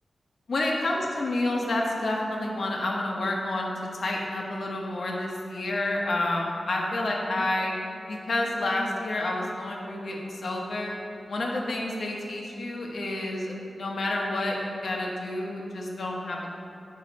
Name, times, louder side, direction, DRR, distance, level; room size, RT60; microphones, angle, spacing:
voice 1, 0.5-3.7 4.0-7.7 8.1-11.0 11.3-16.5, left 2 dB, 65° left, -1 dB, 1.1 m, -29 dB
8.5 x 5.6 x 4.1 m, 2.7 s
wide cardioid pair, 130°, 0 cm